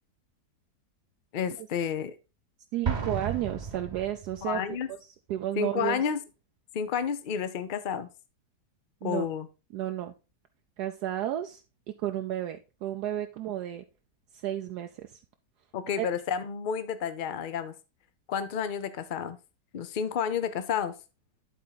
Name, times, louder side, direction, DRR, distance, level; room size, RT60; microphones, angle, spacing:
voice 1, 1.3-2.2 4.4-4.9 5.6-6.2 6.7-8.1 9.0-9.5 15.7-17.7 18.3-19.4 19.7-20.9, left 7 dB, 65° left, 12 dB, 0.4 m, -30 dB
voice 2, 2.7-4.6 4.9-5.0 5.3-6.0 9.0-9.3 9.7-10.1 10.8-11.6 11.9-13.8 14.3-15.2 16.0-16.1, right 12 dB, 75° right, 6 dB, 1.1 m, -32 dB
Explosion, 2.8-4.6, right 6 dB, 35° right, 0.8 m, -33 dB
10.5 x 4.2 x 3.9 m, 0.30 s
omnidirectional pair, 1.8 m